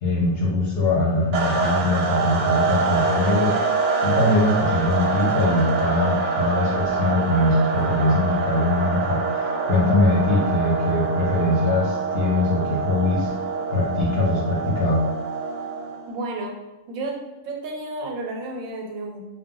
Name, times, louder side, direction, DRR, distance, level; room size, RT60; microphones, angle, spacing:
voice 1, 0.0-3.6 4.0-9.2 9.6-13.3 13.7-15.0, left 2 dB, 60° left, -4 dB, 0.7 m, -22 dB
sound 1, 1.3-16.1, right 4 dB, 70° right, 0.8 m, -25 dB
voice 2, 16.1-16.6 16.9-17.2 17.4-19.2, right 2 dB, 90° right, 1 dB, 1.0 m, -31 dB
2.2 x 2.1 x 3.6 m, 1.0 s
omnidirectional pair, 1.4 m